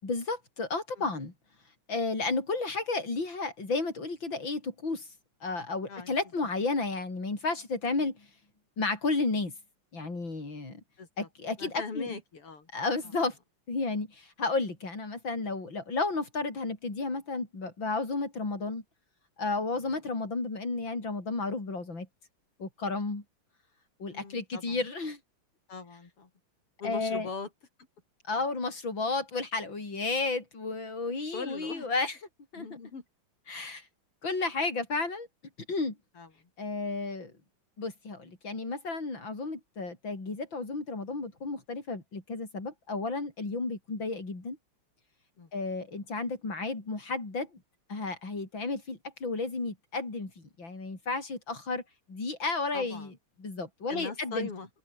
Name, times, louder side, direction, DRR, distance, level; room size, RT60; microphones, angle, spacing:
voice 1, 0.0-1.3 1.9-5.1 5.4-8.3 8.8-9.5 9.9-10.8 11.2-12.2 12.7-13.4 13.7-18.8 19.4-22.1 22.6-23.2 24.0-25.2 26.8-27.3 28.3-32.2 32.5-32.7 33.5-33.9 34.2-35.3 35.7-36.0 36.6-37.3 37.8-44.6 45.5-47.6 47.9-51.8 52.1-53.1 53.4-54.5, left 3 dB, 60° left, 6.5 m, -32 dB
voice 2, 11.0-11.3 11.6-12.7 24.1-24.8 25.7-26.3 26.8-27.5 31.3-31.9 32.6-33.0 36.2-36.3 45.4-45.5 52.7-53.1 53.9-54.7, left 4 dB, 90° left, 4.8 m, -40 dB
open air
omnidirectional pair, 2.4 m